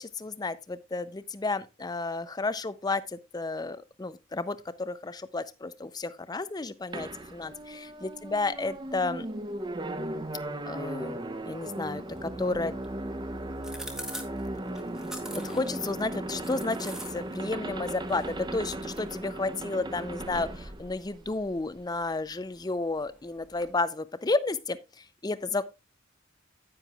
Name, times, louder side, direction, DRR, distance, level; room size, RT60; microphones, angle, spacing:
voice 1, 0.0-9.3 10.7-11.2 11.5-12.7 15.4-24.8 25.2-25.7, left 3 dB, 20° left, 0.5 m, -32 dB
sound 1, 6.9-21.7, right 1 dB, 20° right, 0.6 m, -37 dB
sound 2, 12.1-23.8, equal, 5° right, 1.2 m, -48 dB
10.0 x 9.3 x 2.3 m
head